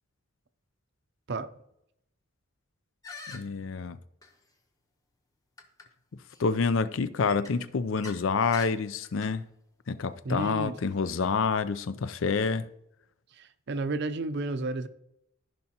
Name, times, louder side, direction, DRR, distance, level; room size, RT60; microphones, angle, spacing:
sound 1, 3.0-3.4 4.2-4.3 5.6-5.9 6.3-6.5 7.3-8.2 8.5-8.7 9.0-9.3, left 3 dB, 15° left, 0.9 m, -44 dB
voice 1, 3.3-4.0 6.4-9.4 9.9-12.7, left 5 dB, 65° left, 0.5 m, -28 dB
voice 2, 10.2-10.8 13.3-14.9, right 2 dB, 55° right, 0.6 m, -32 dB
14.5 x 5.4 x 2.9 m
head